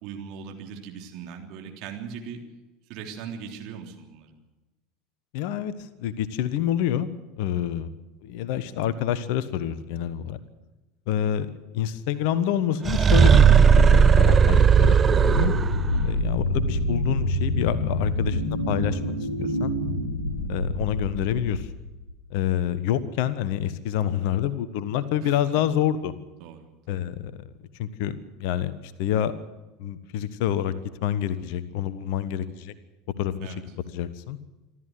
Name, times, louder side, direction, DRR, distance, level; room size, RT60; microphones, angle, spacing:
voice 1, 0.0-2.4 2.9-4.3 15.9-16.2 25.2-25.4 26.4-26.6 33.4-33.6, right 7 dB, 50° right, 2 dB, 3.4 m, -39 dB
voice 2, 5.3-5.7 6.0-7.1 7.4-7.9 8.2-10.4 11.1-13.4 13.8-15.6 16.0-19.0 19.4-19.7 20.5-21.7 22.3-26.1 26.9-27.5 27.8-29.3 29.8-30.7 31.0-32.7 33.2-33.5 33.9-34.4, left 10 dB, 55° left, 15 dB, 1.2 m, -27 dB
sound 1, 12.9-15.9, right 6 dB, 25° right, 0.8 m, -16 dB
sound 2, 15.3-22.1, left 1 dB, 90° left, 2.1 m, -27 dB
26.0 x 13.0 x 7.9 m, 1.1 s
figure-of-eight pair, 75°, 0 cm